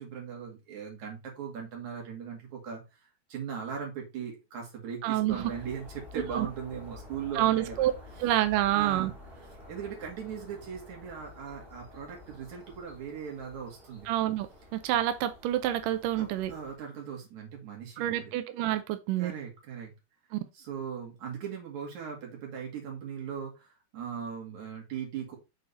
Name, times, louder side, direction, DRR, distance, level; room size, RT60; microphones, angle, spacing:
voice 1, 0.0-3.0 3.3-7.9 8.7-9.1 9.7-14.1 16.2-18.3 19.2-19.9 20.5-25.4, right 7 dB, 55° right, 3.1 m, -39 dB
voice 2, 5.0-5.4 6.3-6.5 7.4-7.9 8.2-9.1 14.1-14.5 14.7-16.5 18.0-19.3 20.3-20.4, right 13 dB, 85° right, 1.9 m, -27 dB
sound 1, 5.3-16.8, left 2 dB, 15° right, 2.3 m, -50 dB
6.8 x 4.0 x 4.1 m
omnidirectional pair, 4.4 m